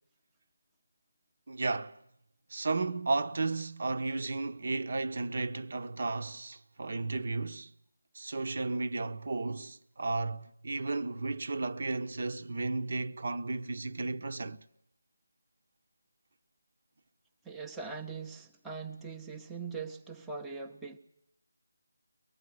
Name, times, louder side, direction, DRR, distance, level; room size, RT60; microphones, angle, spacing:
voice 1, 1.5-2.0 2.5-7.7 8.1-14.6, right 3 dB, 50° right, 1.1 m, -34 dB
voice 2, 17.4-21.0, right 5 dB, ahead, 0.9 m, -41 dB
24.0 x 20.0 x 9.4 m
figure-of-eight pair, 165°, 0 cm